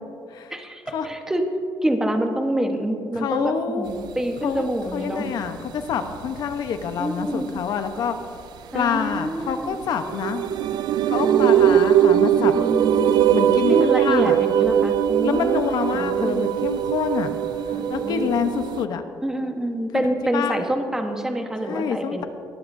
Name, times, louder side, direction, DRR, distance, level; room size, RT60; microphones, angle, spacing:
voice 1, 0.5-1.4 1.8-5.3 7.0-7.5 8.7-9.8 11.2-11.8 12.4-13.1 13.7-16.5 17.7-18.3 19.2-22.3, right 1 dB, 5° right, 4 dB, 1.2 m, -26 dB
voice 2, 3.2-3.9 4.4-4.6 4.9-8.2 8.7-10.4 11.1-12.5 13.3-14.4 15.2-17.4 17.7-19.0 19.9-20.6 21.6-22.2, left 7 dB, 65° left, 8 dB, 1.0 m, -27 dB
sound 1, 4.9-5.0 5.4-5.5 5.9-6.8 7.6-7.7 9.5-9.6 10.0-18.8, right 10 dB, 70° right, 0.4 m, -20 dB
20.5 x 15.0 x 2.7 m, 2.5 s
cardioid pair, 140°, 7 cm